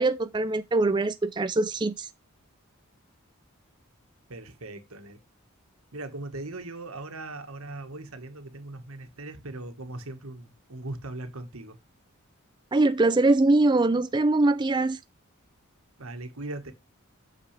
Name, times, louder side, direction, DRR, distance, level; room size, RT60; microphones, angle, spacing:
voice 1, 0.0-2.1 12.7-15.0, right 2 dB, 20° right, 0.4 m, -23 dB
voice 2, 4.3-5.2 5.9-11.8 16.0-16.7, right 2 dB, 80° right, 1.7 m, -39 dB
8.8 x 6.7 x 3.4 m
head